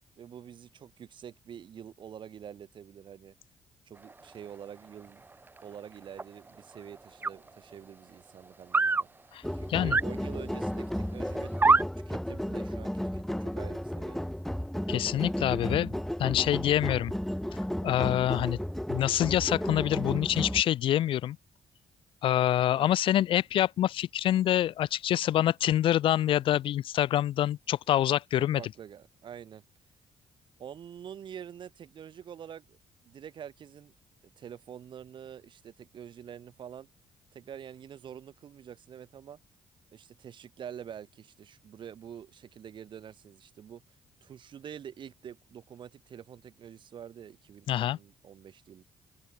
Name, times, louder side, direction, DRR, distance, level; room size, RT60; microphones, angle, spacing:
voice 1, 0.2-3.3 3.9-5.2 5.6-9.1 9.5-11.6 12.1-14.3 22.7-22.9 28.3-29.6 30.6-32.8 33.0-33.9 34.2-36.9 37.3-39.4 39.9-43.8 44.2-48.8, right 9 dB, 60° right, 6.1 m, -46 dB
sound 1, 6.2-6.3 7.2-7.3 8.7-9.0 9.9-10.0 10.6-10.7 11.5-11.8, right 3 dB, 20° right, 0.7 m, -22 dB
sound 2, 9.4-20.6, equal, 5° left, 1.5 m, -33 dB
voice 2, 14.9-17.1 17.8-18.6 18.9-21.4 22.2-28.6 47.7-48.0, left 12 dB, 75° left, 1.9 m, -26 dB
open air
supercardioid pair, 65°, 9 cm